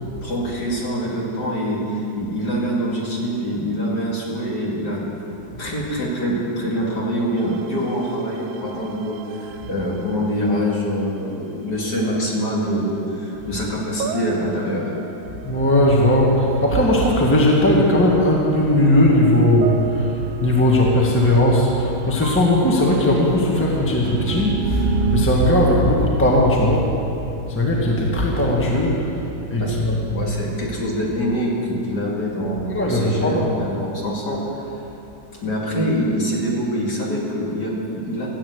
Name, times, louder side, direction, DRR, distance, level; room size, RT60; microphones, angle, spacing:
voice 1, 0.2-5.0 5.6-14.8 29.6-34.6 35.4-38.3, equal, 55° left, -4 dB, 3.1 m, -25 dB
sound 1, 7.4-11.2 12.4-12.9 13.4-25.3, right 7 dB, 80° right, 1.4 m, -33 dB
voice 2, 15.4-30.0 32.7-33.7, left 1 dB, 5° left, -3 dB, 1.5 m, -18 dB
15.0 x 8.9 x 8.0 m, 2.8 s
omnidirectional pair, 2.2 m